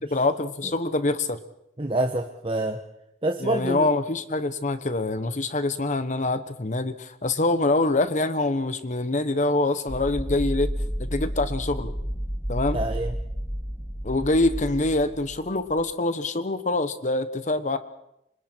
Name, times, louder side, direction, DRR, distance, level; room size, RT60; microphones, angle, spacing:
voice 1, 0.0-1.4 3.4-10.7 11.0-11.9 12.5-12.8 14.0-17.8, left 2 dB, 45° left, 11 dB, 1.2 m, -25 dB
voice 2, 1.8-2.8 3.2-3.9 12.7-13.1, right 2 dB, 30° right, 4 dB, 1.2 m, -26 dB
sound 1, 9.9-15.9, equal, 10° left, 2.3 m, -31 dB
29.5 x 26.0 x 4.6 m, 0.82 s
head